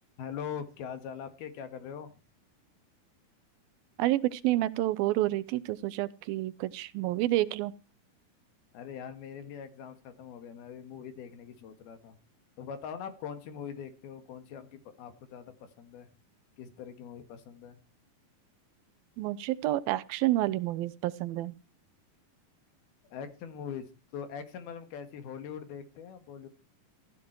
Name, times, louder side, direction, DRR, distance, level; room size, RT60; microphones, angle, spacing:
voice 1, 0.2-2.1 8.7-12.2 12.6-16.1 16.6-17.8 23.1-26.5, left 7 dB, 80° left, 9 dB, 3.6 m, -42 dB
voice 2, 4.0-7.7 19.2-21.5, right 16 dB, 80° right, 17 dB, 2.6 m, -29 dB
14.5 x 14.5 x 4.6 m, 0.32 s
omnidirectional pair, 4.3 m